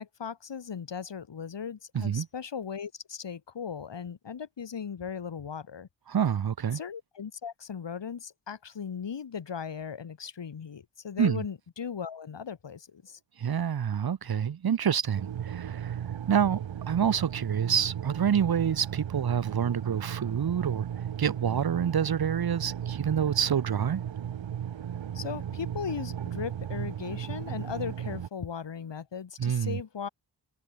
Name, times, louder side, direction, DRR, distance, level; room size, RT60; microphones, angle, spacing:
voice 1, 0.0-5.9 6.7-13.2 25.1-30.1, left 7 dB, 70° left, 3.4 m, -37 dB
voice 2, 1.9-2.3 6.1-6.8 11.2-11.4 13.4-16.0 16.3-16.6 16.9-20.9 21.2-24.0 29.4-29.8, right 8 dB, 55° right, 1.0 m, -27 dB
sound 1, 15.2-28.3, right 9 dB, 85° right, 1.7 m, -36 dB
cardioid pair, 50°, 44 cm